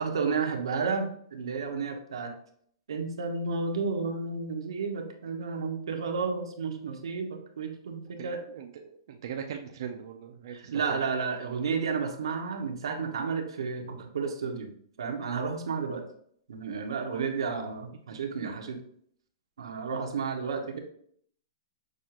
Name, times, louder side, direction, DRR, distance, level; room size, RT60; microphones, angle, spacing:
voice 1, 0.0-2.3 2.9-8.4 10.5-14.7 15.0-16.0 16.5-18.8 19.6-20.8, right 5 dB, 85° right, 3 dB, 0.8 m, -32 dB
voice 2, 8.2-11.0 18.1-18.2, right 8 dB, 55° right, 3 dB, 0.4 m, -40 dB
6.2 x 2.4 x 2.9 m, 0.63 s
hypercardioid pair, 160°, 3 cm